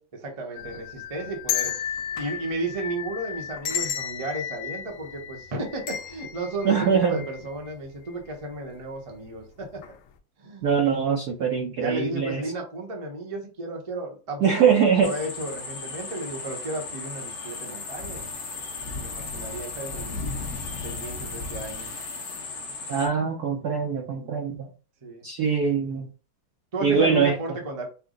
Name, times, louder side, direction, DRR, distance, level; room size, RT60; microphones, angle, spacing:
voice 1, 0.2-1.7 2.2-9.8 10.4-10.7 11.7-18.3 18.9-20.2 20.8-21.9 25.0-25.3 26.7-27.8, right 2 dB, 30° right, 0.6 m, -33 dB
sound 1, 0.6-7.7 8.1-8.2 9.1-9.4 9.8-9.9, left 9 dB, 85° left, 1.5 m, -33 dB
voice 2, 6.6-7.2 10.6-12.4 14.4-15.1 22.9-24.7 25.2-26.1 26.8-27.3, right 6 dB, 70° right, 1.0 m, -22 dB
sound 2, 15.0-23.1, left 4 dB, 55° left, 1.4 m, -35 dB
5.7 x 2.1 x 3.8 m
omnidirectional pair, 2.3 m